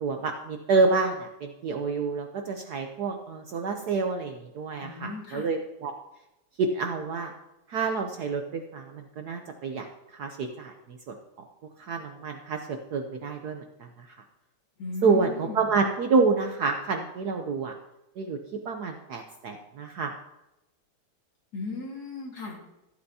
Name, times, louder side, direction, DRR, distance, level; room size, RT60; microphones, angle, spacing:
voice 1, 0.0-5.9 6.6-7.3 7.7-9.9 10.1-11.1 11.8-13.9 15.0-17.7 18.2-18.4 18.6-20.1, right 4 dB, 65° right, 5 dB, 1.1 m, -28 dB
voice 2, 4.8-5.5 14.8-15.6 21.5-22.6, left 3 dB, 50° left, -1 dB, 2.3 m, -36 dB
14.5 x 8.0 x 2.8 m, 0.91 s
omnidirectional pair, 2.2 m